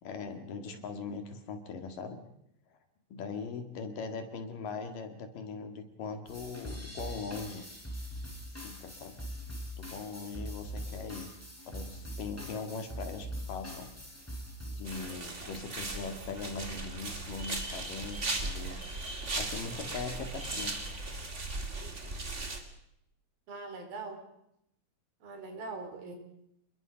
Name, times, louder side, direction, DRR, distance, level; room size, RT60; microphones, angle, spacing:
voice 1, 0.0-2.2 3.1-7.7 8.5-9.2 9.7-11.3 11.7-13.9 14.7-20.8, left 4 dB, 65° left, 7 dB, 3.6 m, -40 dB
sound 1, 6.3-15.1, equal, 5° left, 3.6 m, -42 dB
sound 2, 14.8-22.6, right 2 dB, 25° right, 2.2 m, -37 dB
voice 2, 21.7-22.2 23.5-24.3 25.2-26.2, right 3 dB, 70° right, 5 dB, 5.4 m, -43 dB
27.5 x 21.5 x 5.2 m, 0.77 s
omnidirectional pair, 4.3 m